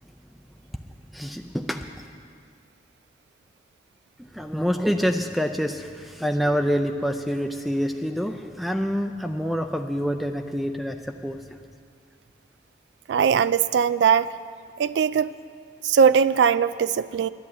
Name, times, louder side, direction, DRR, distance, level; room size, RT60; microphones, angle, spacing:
voice 1, 1.1-1.9 4.2-11.6, equal, ahead, 6 dB, 0.4 m, -27 dB
voice 2, 13.1-14.3 14.8-15.3 15.8-17.3, right 7 dB, 75° right, 15 dB, 0.3 m, -20 dB
11.0 x 11.0 x 8.5 m, 2.1 s
head